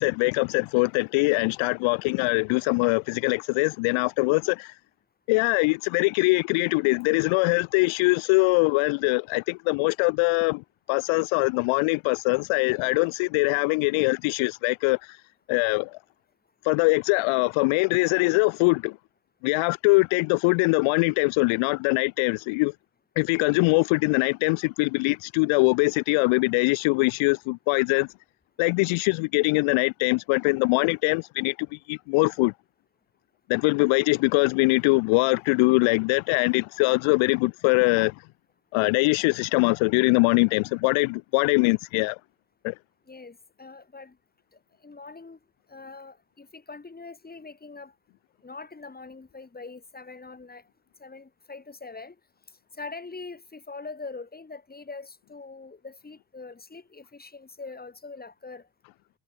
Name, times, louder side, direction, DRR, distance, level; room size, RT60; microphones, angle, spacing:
voice 1, 0.0-4.7 5.3-10.6 10.9-15.0 15.5-15.9 16.6-18.9 19.4-22.7 23.2-28.1 28.6-31.5 31.9-32.5 33.5-38.1 38.7-42.2 42.6-42.7, left 28 dB, 80° left, 0.5 m, -22 dB
voice 2, 43.1-44.2 44.8-45.4 45.7-47.9 48.4-50.6 51.0-52.1 52.8-58.7, left 4 dB, 20° left, 3.1 m, -42 dB
cardioid pair, 90°, 47 cm